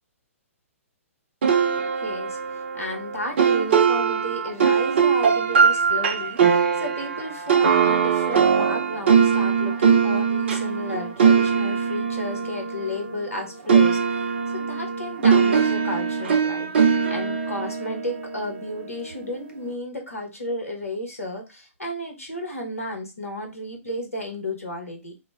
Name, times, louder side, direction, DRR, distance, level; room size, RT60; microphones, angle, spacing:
sound 1, 1.4-13.4 13.7-18.9, right 6 dB, 50° right, 0.5 m, -21 dB
voice 1, 1.9-2.4 2.7-14.2 14.5-25.1, left 1 dB, 75° left, 2 dB, 0.9 m, -33 dB
2.3 x 2.0 x 3.3 m, 0.26 s
figure-of-eight pair, 120°, 8 cm